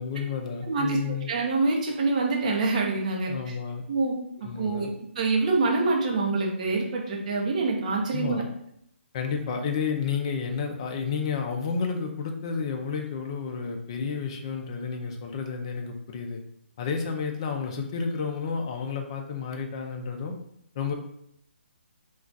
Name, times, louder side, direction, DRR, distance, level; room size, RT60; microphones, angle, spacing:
voice 1, 0.0-1.3 3.3-3.8 4.4-4.9 8.1-8.5 9.1-16.4 16.8-20.3 20.8-20.9, left 5 dB, 25° left, 3 dB, 0.3 m, -31 dB
voice 2, 0.6-3.3 3.9-4.1 4.6-4.9 5.2-8.4, right 3 dB, 35° right, -1 dB, 0.7 m, -25 dB
2.3 x 2.3 x 3.8 m, 0.74 s
hypercardioid pair, 165°, 7 cm